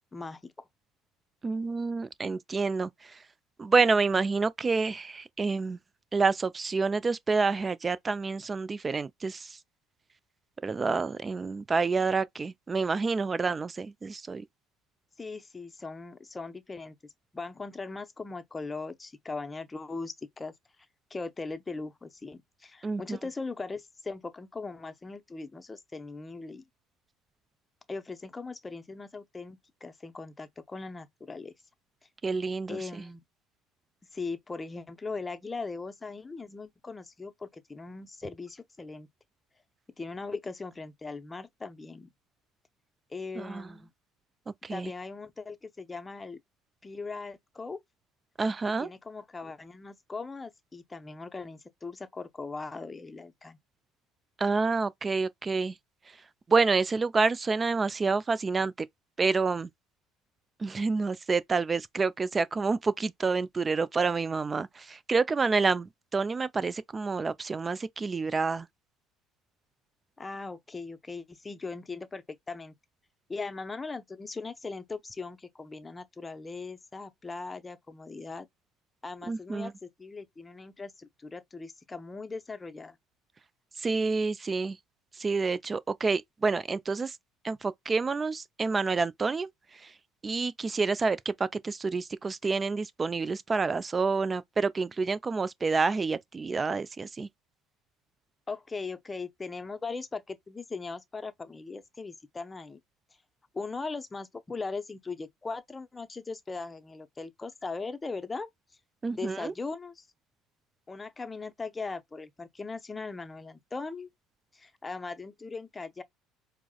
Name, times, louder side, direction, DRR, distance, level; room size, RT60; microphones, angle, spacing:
voice 1, 0.1-0.5 15.2-17.0 17.3-20.5 21.1-26.6 27.9-31.5 32.7-33.2 34.1-39.1 40.0-42.1 43.1-43.9 44.7-46.4 46.8-47.8 48.8-53.6 70.2-72.7 73.3-78.5 79.0-83.0 98.5-102.8 103.5-108.5 109.1-110.1 110.9-114.1 114.5-116.0, left 4 dB, 20° left, 0.6 m, -39 dB
voice 2, 1.4-3.2 3.6-5.8 6.1-9.6 10.6-14.4 22.8-23.2 32.2-33.0 43.4-43.7 44.5-44.9 48.4-48.9 54.4-55.7 56.5-58.9 59.2-59.7 60.6-68.7 79.3-79.7 83.8-84.8 85.2-87.2 87.4-89.9 90.2-97.3 109.0-109.5, right 4 dB, 30° right, 0.3 m, -28 dB
4.6 x 2.0 x 2.3 m
hypercardioid pair, 60°, 0 cm